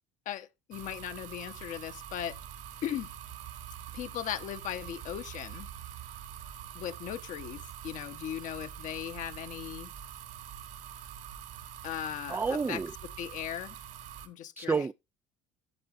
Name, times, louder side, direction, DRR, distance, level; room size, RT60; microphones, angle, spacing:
voice 1, 0.3-2.4 2.8-3.1 3.9-5.7 6.7-9.9 11.8-12.8 13.2-13.8 14.2-14.8, left 10 dB, 55° left, 1.1 m, -38 dB
sound 1, 0.7-14.3, right 10 dB, 65° right, 2.4 m, -45 dB
voice 2, 12.3-12.9 14.6-14.9, right 4 dB, 15° right, 0.4 m, -29 dB
13.5 x 7.8 x 2.6 m
hypercardioid pair, 65°, 15 cm